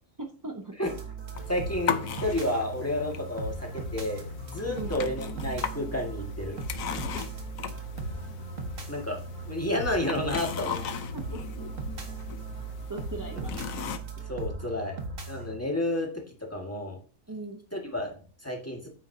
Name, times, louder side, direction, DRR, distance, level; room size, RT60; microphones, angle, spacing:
voice 1, 0.2-0.9 4.7-5.0 11.1-11.4 12.9-13.6 17.3-17.6, right 2 dB, 20° right, 3 dB, 0.6 m, -38 dB
sound 1, 0.8-15.6, right 3 dB, 65° right, 1.9 m, -38 dB
sound 2, 1.3-14.0, left 7 dB, 70° left, 1.2 m, -38 dB
voice 2, 1.5-4.2 4.5-6.6 7.9-10.9 14.2-15.0 15.3-17.0 17.7-18.9, left 1 dB, 10° left, 0 dB, 1.9 m, -31 dB
9.4 x 8.9 x 2.8 m, 0.40 s
omnidirectional pair, 1.5 m